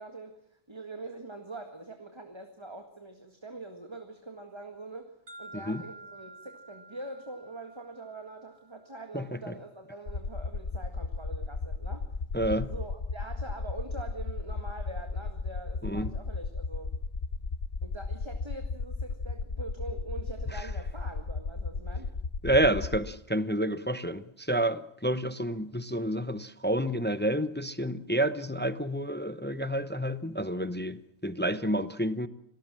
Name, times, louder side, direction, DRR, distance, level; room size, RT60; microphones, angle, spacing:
voice 1, 0.0-5.1 5.4-12.0 12.6-16.9 17.8-22.1, right 2 dB, 20° right, 1.9 m, -44 dB
sound 1, 5.3-9.2, right 2 dB, 75° right, 3.6 m, -50 dB
sound 2, 10.1-23.0, left 3 dB, 45° left, 1.2 m, -34 dB
voice 2, 12.3-12.7 15.8-16.1 22.4-31.0 31.2-32.3, right 1 dB, 10° left, 0.6 m, -29 dB
26.5 x 18.5 x 7.5 m
omnidirectional pair, 1.4 m